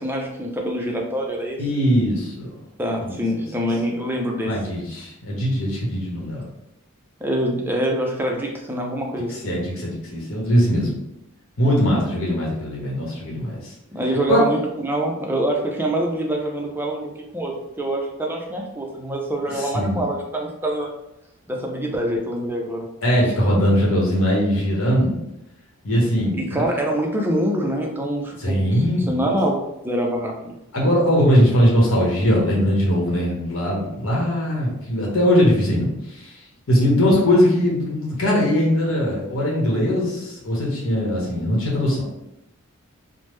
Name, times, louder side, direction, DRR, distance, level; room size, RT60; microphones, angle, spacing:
voice 1, 0.0-1.6 2.8-4.6 7.2-9.6 13.9-20.9 21.5-22.9 26.3-30.5, right 1 dB, 10° right, 0 dB, 0.4 m, -25 dB
voice 2, 1.6-2.6 3.0-3.7 4.4-6.4 9.3-10.9 11.6-13.7 14.3-14.4 19.5-20.0 23.0-25.2 25.8-26.4 28.4-29.4 30.7-36.4 36.7-42.0, equal, 70° left, -3 dB, 0.9 m, -20 dB
3.4 x 2.0 x 3.1 m, 0.85 s
head